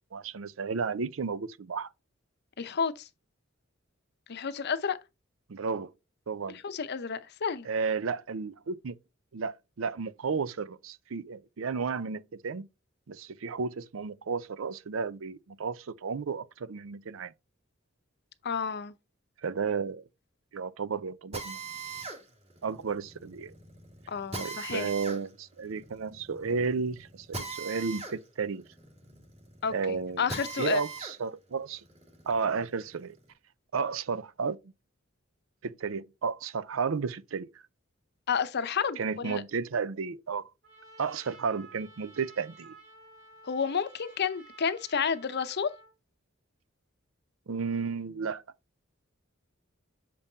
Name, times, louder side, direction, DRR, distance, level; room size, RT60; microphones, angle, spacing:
voice 1, 0.1-1.9 5.5-5.9 6.3-6.6 7.6-9.0 9.3-12.7 13.1-17.3 19.4-20.0 20.5-21.6 22.6-23.5 24.4-28.6 29.7-30.3 30.6-31.8 32.3-33.1 33.7-34.6 35.6-37.5 39.0-40.5 41.0-42.7 47.5-48.4, right 5 dB, 85° right, 0.5 m, -33 dB
voice 2, 2.6-3.1 4.3-5.0 6.6-7.7 18.4-18.9 24.1-24.9 29.6-29.7 30.2-30.8 38.3-39.4 43.4-45.7, left 6 dB, 55° left, 0.7 m, -30 dB
Drill, 21.3-31.2 31.6-33.2, right 3 dB, 30° right, 2.1 m, -41 dB
Trumpet, 40.6-45.9, right 3 dB, 60° right, 3.0 m, -53 dB
6.8 x 5.4 x 2.7 m
head